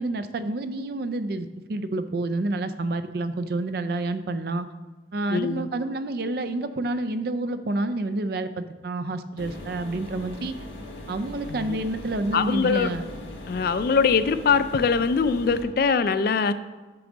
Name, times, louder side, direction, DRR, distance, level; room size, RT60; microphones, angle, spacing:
voice 1, 0.0-4.7 5.1-10.6 11.1-13.0, right 2 dB, 55° right, 0.4 m, -29 dB
voice 2, 5.3-5.7 11.5-11.8 12.3-12.9 13.5-16.5, left 5 dB, 55° left, 0.3 m, -22 dB
sound 1, 9.4-15.6, left 1 dB, 90° left, 1.3 m, -39 dB
6.8 x 6.2 x 3.9 m
head